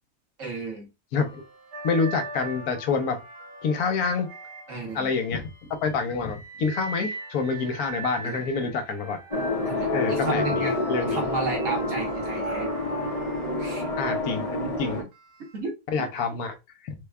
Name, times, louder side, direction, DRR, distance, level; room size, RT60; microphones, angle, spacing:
voice 1, 0.4-0.9 4.7-5.1 8.2-8.7 9.6-10.8 11.1-12.7 13.6-13.8 15.5-16.1, right 2 dB, 60° right, 1.6 m, -33 dB
voice 2, 1.1-1.4 1.8-3.2 3.6-4.3 4.9-5.5 5.8-9.2 9.9-11.2 14.0-15.0 15.9-16.5 16.8-16.9, left 4 dB, 75° left, 1.2 m, -27 dB
sound 1, 1.2-5.5 6.0-14.1 15.1-15.4, right 2 dB, 85° right, 1.4 m, -40 dB
sound 2, 9.3-15.0, left 2 dB, 35° left, 0.6 m, -28 dB
3.4 x 2.3 x 3.4 m
omnidirectional pair, 1.6 m